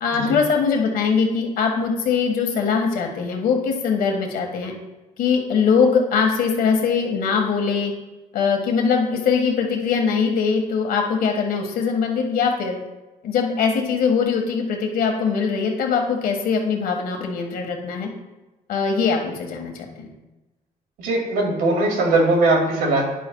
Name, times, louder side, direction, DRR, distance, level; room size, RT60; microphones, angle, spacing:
voice 1, 0.0-4.7 5.2-7.9 8.3-12.8 13.2-18.1 18.7-20.1, left 5 dB, 70° left, 2 dB, 1.7 m, -21 dB
voice 2, 21.0-23.0, right 2 dB, 85° right, 0 dB, 2.5 m, -20 dB
10.5 x 8.5 x 2.4 m, 1.1 s
cardioid pair, 85°, 15 cm